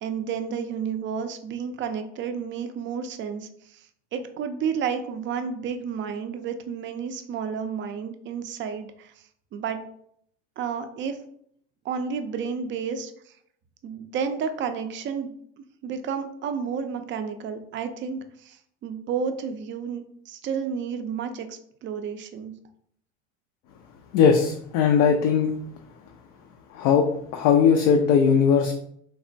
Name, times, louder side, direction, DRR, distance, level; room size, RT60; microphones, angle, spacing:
voice 1, 0.0-3.8 4.1-9.1 9.5-9.8 10.6-11.2 11.8-13.1 13.8-15.3 15.8-22.5, right 6 dB, 35° right, 8 dB, 0.4 m, -31 dB
voice 2, 24.1-25.5 26.7-27.1 27.3-28.7, left 6 dB, 60° left, 3 dB, 0.5 m, -19 dB
3.2 x 2.1 x 2.6 m, 0.68 s
hypercardioid pair, 85°, 35 cm